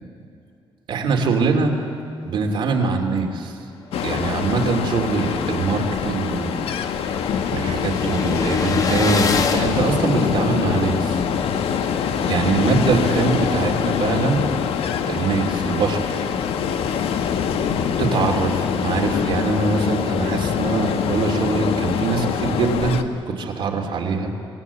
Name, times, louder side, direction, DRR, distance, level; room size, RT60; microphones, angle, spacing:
voice 1, 0.9-1.7 2.2-3.6 4.0-6.6 7.5-11.2 12.3-14.4 15.1-16.2 18.0-24.3, right 4 dB, 60° right, 2 dB, 3.0 m, -23 dB
Ocean, 3.9-23.0, left 7 dB, 90° left, 1.4 m, -24 dB
sound 1, 5.3-5.4 5.7-5.8 5.9-10.8, left 4 dB, 40° left, 1.6 m, -28 dB
26.0 x 19.0 x 8.4 m, 2.8 s
wide cardioid pair, 170°, 9 cm